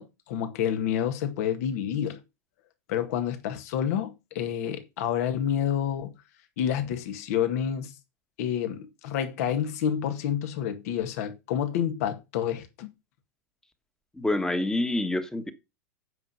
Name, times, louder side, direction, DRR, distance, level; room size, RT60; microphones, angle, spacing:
voice 1, 0.0-2.2 2.9-6.1 6.6-7.9 8.4-12.9, left 9 dB, 65° left, 1.9 m, -29 dB
voice 2, 14.1-15.5, left 1 dB, 5° left, 1.3 m, -27 dB
9.1 x 5.7 x 5.7 m
hypercardioid pair, 110°, 9 cm